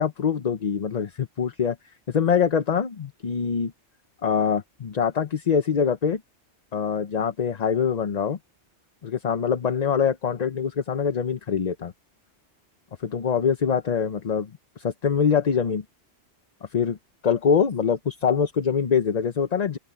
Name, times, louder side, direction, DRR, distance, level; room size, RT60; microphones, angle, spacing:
voice 1, 0.0-1.8 2.1-3.7 4.2-6.2 6.7-8.4 9.0-11.9 13.0-14.5 14.8-15.8 16.7-17.0 17.2-19.8, left 7 dB, 40° left, 0.7 m, -24 dB
open air
omnidirectional pair, 1.2 m